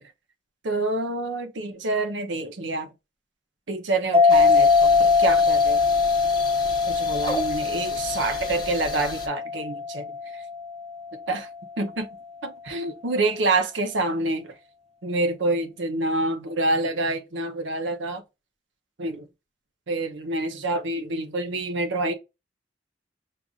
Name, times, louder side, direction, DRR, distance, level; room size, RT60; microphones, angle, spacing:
voice 1, 0.6-2.9 3.7-5.8 6.9-10.4 11.3-11.5 11.8-12.1 12.4-14.5 15.0-18.2 19.0-19.2 19.9-22.1, right 2 dB, 85° right, 0.8 m, -27 dB
sound 1, 4.1-11.2, left 4 dB, 35° right, 0.5 m, -22 dB
sound 2, 4.3-9.3, left 2 dB, 25° left, 1.0 m, -36 dB
6.5 x 2.5 x 2.4 m
head